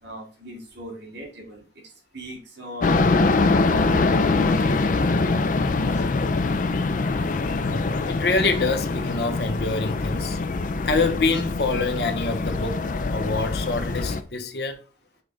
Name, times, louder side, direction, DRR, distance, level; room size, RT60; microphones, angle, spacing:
voice 1, 0.0-1.6 2.1-3.6 3.9-6.0, left 1 dB, 90° right, 2.8 m, -38 dB
sound 1, 2.8-14.2, left 3 dB, 45° left, 0.4 m, -23 dB
voice 2, 7.6-10.4 10.9-12.8 13.1-14.8, left 3 dB, 65° left, 0.9 m, -26 dB
5.7 x 3.3 x 5.0 m
head